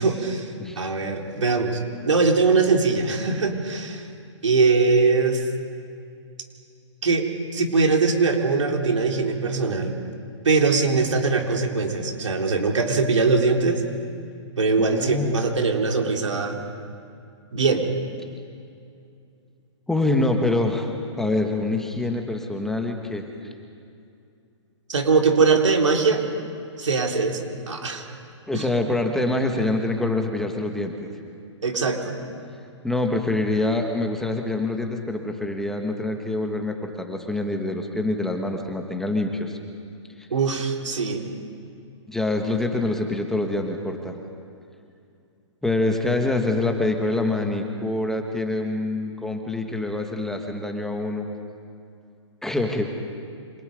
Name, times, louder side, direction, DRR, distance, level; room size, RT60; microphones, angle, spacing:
voice 1, 0.0-0.5 0.8-1.8 2.0-4.1 4.4-5.5 7.0-7.3 7.5-9.9 10.4-13.8 14.6-16.6 17.5-17.9 24.9-26.2 26.8-28.1 28.5-28.7 31.6-32.2 40.3-41.2, right 4 dB, 85° right, 2 dB, 3.6 m, -21 dB
voice 2, 14.8-15.4 19.9-20.9 21.2-23.3 28.5-31.1 32.8-39.6 42.1-44.2 45.6-51.3 52.4-52.9, left 2 dB, 5° left, 3 dB, 1.8 m, -25 dB
27.5 x 26.5 x 5.3 m, 2.5 s
hypercardioid pair, 135°, 15 cm